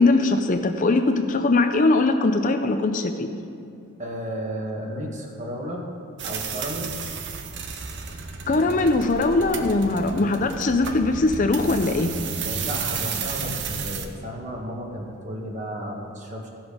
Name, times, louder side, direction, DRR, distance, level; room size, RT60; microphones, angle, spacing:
voice 1, 0.0-3.3 8.5-12.1, left 2 dB, 40° left, 7 dB, 0.5 m, -21 dB
voice 2, 4.0-5.9 6.2-6.9 8.5-8.9 9.9-10.3 12.4-16.5, equal, 35° right, 0 dB, 1.4 m, -33 dB
sound 1, 6.2-14.1, right 5 dB, 55° right, 0.7 m, -32 dB
15.0 x 6.1 x 5.0 m, 2.6 s
head